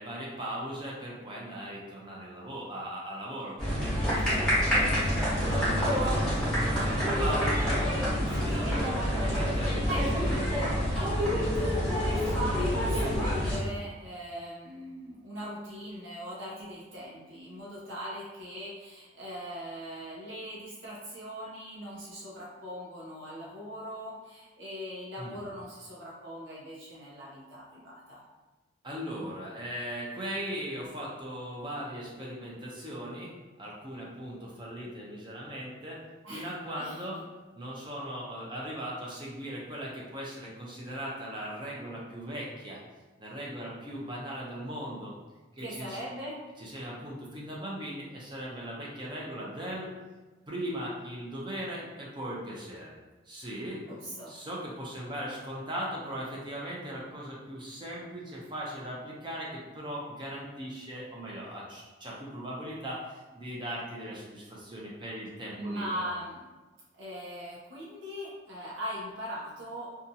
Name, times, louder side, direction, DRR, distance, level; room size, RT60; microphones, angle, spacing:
voice 1, 0.0-6.3 6.6-9.9 25.2-25.4 28.8-33.3 33.6-36.0 36.3-37.2 37.5-42.8 43.2-45.1 45.5-46.0 46.6-49.9 50.5-53.0 53.3-53.8 54.3-66.0, equal, 25° right, -4 dB, 0.5 m, -38 dB
sound 1, 3.6-13.6, equal, 5° left, 1.0 m, -27 dB
voice 2, 9.7-10.2 10.9-28.2 36.2-36.5 36.8-37.0 45.6-46.4 53.9-54.3 65.6-66.4 66.9-69.9, equal, 85° right, -6 dB, 0.7 m, -40 dB
2.7 x 2.3 x 2.6 m, 1.2 s
head